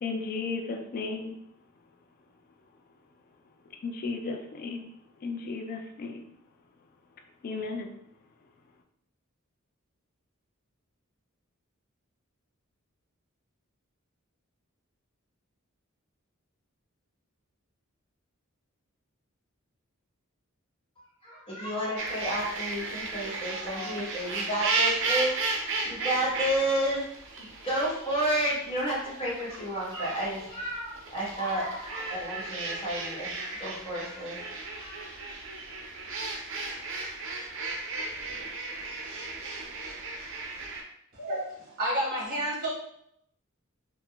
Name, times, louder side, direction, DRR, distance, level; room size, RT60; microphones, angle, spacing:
voice 1, 0.0-1.4 3.8-6.2 7.4-7.9, left 4 dB, 45° left, 3 dB, 0.3 m, -34 dB
voice 2, 21.2-25.3 25.8-27.0 27.4-33.3 33.6-35.0, right 1 dB, 25° left, -6 dB, 1.1 m, -31 dB
sound 1, 22.0-40.8, right 3 dB, 65° right, 0.5 m, -35 dB
voice 3, 41.1-42.7, right 1 dB, 45° right, -5 dB, 1.2 m, -30 dB
3.6 x 2.0 x 2.2 m, 0.73 s
head